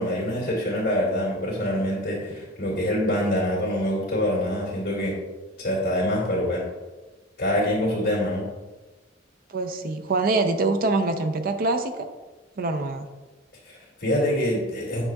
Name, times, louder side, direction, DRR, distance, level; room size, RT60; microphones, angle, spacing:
voice 1, 0.0-5.1 5.6-6.6 7.4-8.4 13.6-15.0, left 1 dB, 50° left, -8 dB, 2.1 m, -25 dB
voice 2, 9.5-12.1 12.6-13.1, right 3 dB, 50° right, 6 dB, 0.5 m, -24 dB
8.8 x 6.2 x 2.3 m, 1.2 s
head